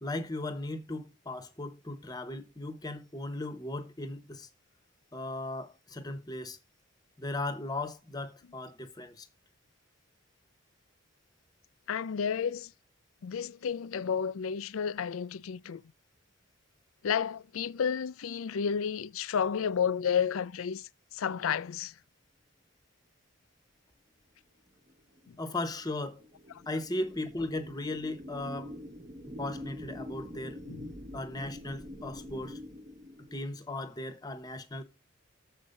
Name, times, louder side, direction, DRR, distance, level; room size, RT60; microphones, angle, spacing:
voice 1, 0.0-4.5 5.1-6.6 7.2-9.3 25.4-26.2 26.7-28.7 29.4-30.6 31.1-32.6 33.3-34.8, left 2 dB, 20° left, 1.0 m, -37 dB
voice 2, 11.9-12.7 13.2-15.8 17.0-21.9 25.3-25.4 30.7-30.9, left 7 dB, 75° left, 0.4 m, -31 dB
sound 1, 24.9-33.6, left 1 dB, 30° right, 1.1 m, -45 dB
7.3 x 5.5 x 6.5 m
head